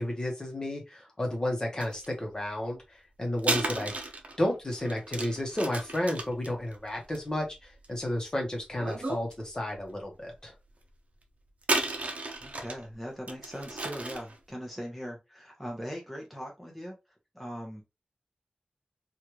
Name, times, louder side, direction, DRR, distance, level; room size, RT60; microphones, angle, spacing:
voice 1, 0.0-3.9 4.4-10.5, left 1 dB, 25° left, 0 dB, 1.1 m, -32 dB
sound 1, 1.8-2.0 3.4-8.1 8.7-9.3 9.7-9.8 11.6-12.8 13.3-14.4, right 2 dB, 55° right, 0.7 m, -33 dB
voice 2, 12.4-17.0 17.3-17.8, equal, ahead, -1 dB, 0.9 m, -40 dB
3.2 x 2.5 x 2.9 m, 0.24 s
wide cardioid pair, 100°, 3 cm